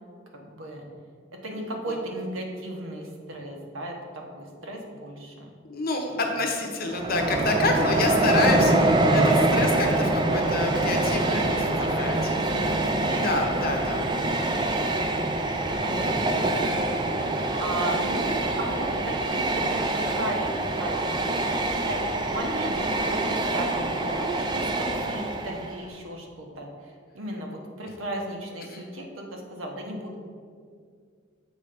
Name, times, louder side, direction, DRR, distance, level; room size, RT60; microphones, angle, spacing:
voice 1, 0.3-0.9 1.3-5.5 6.1-6.2 11.3-13.9 15.8-30.2, right 1 dB, 85° right, 1 dB, 1.0 m, -36 dB
voice 2, 5.7-12.3 13.2-14.0 15.7-15.8 28.7-28.8, left 2 dB, 50° left, 2 dB, 0.8 m, -28 dB
Train, 6.9-25.8, right 2 dB, 20° right, 0.4 m, -25 dB
7.2 x 3.2 x 5.0 m, 2.1 s
head